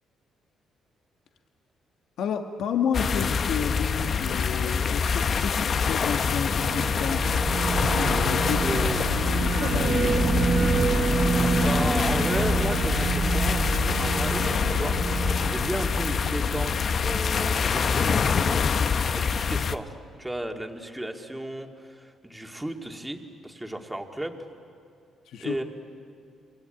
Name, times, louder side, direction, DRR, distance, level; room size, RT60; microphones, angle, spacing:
voice 1, 2.2-7.3 7.9-8.7 9.4-10.3 25.3-25.6, left 7 dB, 80° left, 4 dB, 1.5 m, -31 dB
sound 1, 2.9-19.8, left 6 dB, 50° left, 0.9 m, -25 dB
sound 2, 6.6-16.8, right 4 dB, 60° right, 2.2 m, -27 dB
voice 2, 8.6-9.1 11.6-18.7 19.1-24.5 25.4-25.6, right 1 dB, 10° right, 3 dB, 2.2 m, -34 dB
27.0 x 22.5 x 8.9 m, 2.4 s
cardioid pair, 90°, 0 cm